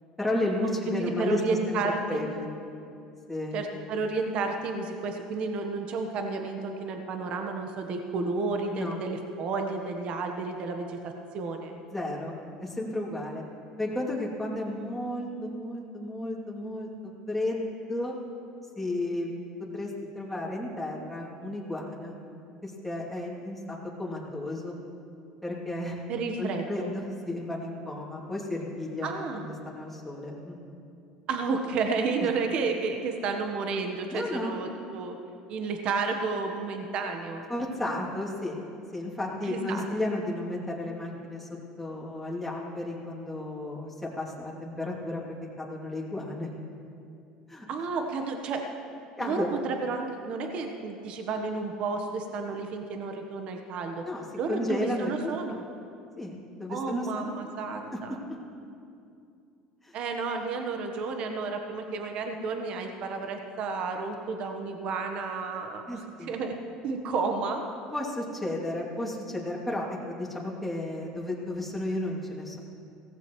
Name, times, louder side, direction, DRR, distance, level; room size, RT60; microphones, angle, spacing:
voice 1, 0.2-2.5 3.3-3.6 8.7-9.0 11.9-13.4 13.8-16.9 17.3-18.2 18.8-19.3 19.7-22.2 22.6-24.7 25.4-26.0 26.4-30.6 34.1-34.6 37.5-38.6 38.9-41.5 41.8-45.2 45.6-46.5 47.5-47.6 49.2-49.6 54.0-55.3 56.2-57.3 59.8-60.0 65.9-66.3 67.9-72.6, left 1 dB, 5° left, -5 dB, 2.7 m, -33 dB
voice 2, 1.0-2.2 3.5-11.7 26.1-26.9 29.0-29.5 31.3-35.2 35.5-37.4 39.4-39.8 47.7-48.6 49.2-54.1 54.4-55.6 56.7-58.2 59.9-66.6 66.8-67.6, right 4 dB, 55° right, 4 dB, 1.1 m, -31 dB
16.5 x 15.0 x 3.1 m, 2.5 s
supercardioid pair, 100°, 2 cm